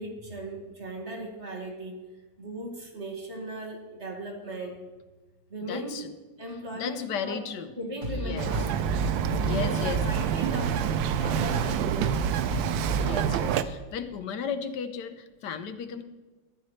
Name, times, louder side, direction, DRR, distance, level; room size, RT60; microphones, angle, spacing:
voice 1, 0.0-2.0 2.4-4.8 5.5-6.0 6.4-7.4 7.8-8.9 9.2-9.8 10.0-10.8 11.2-12.1, right 1 dB, 35° right, 0 dB, 2.1 m, -37 dB
voice 2, 5.6-6.1 6.7-7.7 8.1-8.6 9.4-10.0 13.0-16.0, left 7 dB, 70° left, 10 dB, 1.2 m, -35 dB
sound 1, 8.0-13.4, equal, 70° right, 3.3 m, -34 dB
Bird vocalization bird call bird song, 8.4-13.6, right 9 dB, 90° right, 1.4 m, -27 dB
14.0 x 10.0 x 3.2 m, 1.2 s
omnidirectional pair, 2.0 m